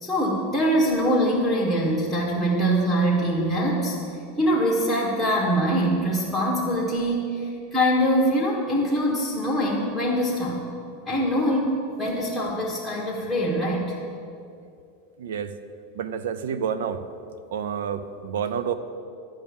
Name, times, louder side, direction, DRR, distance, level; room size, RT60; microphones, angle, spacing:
voice 1, 0.0-4.0 4.4-10.6 11.1-14.0, equal, 5° right, -7 dB, 1.5 m, -23 dB
voice 2, 15.2-15.6 15.9-17.0 17.5-18.7, right 7 dB, 85° right, 12 dB, 0.7 m, -29 dB
12.0 x 5.5 x 8.7 m, 2.5 s
supercardioid pair, 155°, 0 cm